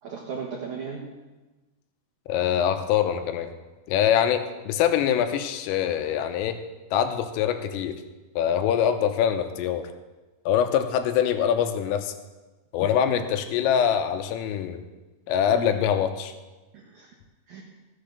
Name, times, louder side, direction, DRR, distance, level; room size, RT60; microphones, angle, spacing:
voice 1, 0.0-1.0 13.1-13.3 15.5-15.7 16.7-17.1 17.5-17.6, right 6 dB, 80° right, -2 dB, 1.7 m, -36 dB
voice 2, 2.3-3.5 3.9-6.6 6.9-8.0 8.4-9.9 10.5-12.1 12.7-14.8 15.3-16.3, left 9 dB, 85° left, 7 dB, 3.5 m, -24 dB
14.0 x 7.8 x 6.6 m, 1.2 s
omnidirectional pair, 5.7 m